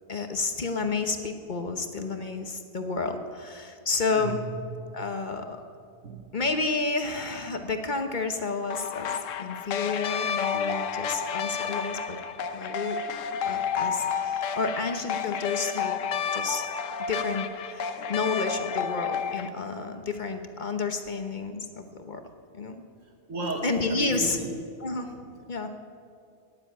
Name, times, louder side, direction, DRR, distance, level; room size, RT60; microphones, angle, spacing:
voice 1, 0.1-4.4 4.9-5.6 6.3-9.1 9.4-12.2 12.5-13.0 13.4-15.9 16.3-16.6 17.1-22.2 22.5-22.8 23.6-24.4 24.8-25.7, left 4 dB, 40° left, 6 dB, 1.0 m, -30 dB
voice 2, 4.1-4.6 6.0-6.3 23.3-24.5, right 2 dB, 70° right, 2 dB, 1.7 m, -34 dB
sound 1, 8.7-19.5, left 7 dB, 70° left, 1.1 m, -31 dB
18.0 x 7.5 x 9.3 m, 2.3 s
omnidirectional pair, 1.4 m